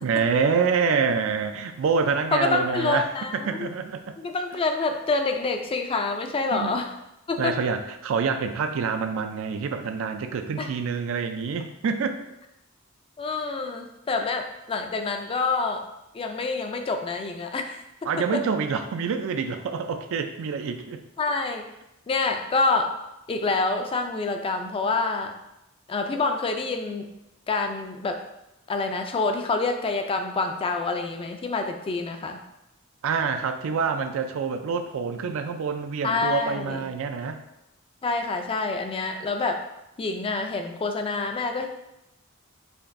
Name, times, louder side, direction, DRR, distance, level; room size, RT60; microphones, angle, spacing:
voice 1, 0.0-4.2 6.5-6.8 7.4-12.2 18.0-21.0 33.0-37.4, right 5 dB, 70° right, 7 dB, 0.4 m, -26 dB
voice 2, 2.3-3.7 4.2-6.9 7.3-7.6 10.6-10.7 13.2-15.8 16.1-17.8 21.2-21.7 22.1-22.9 23.3-25.3 25.9-27.1 27.5-28.2 28.7-32.4 36.0-36.8 38.0-39.6 40.0-41.7, left 3 dB, 25° left, 5 dB, 0.3 m, -27 dB
4.9 x 2.6 x 2.5 m, 0.89 s
head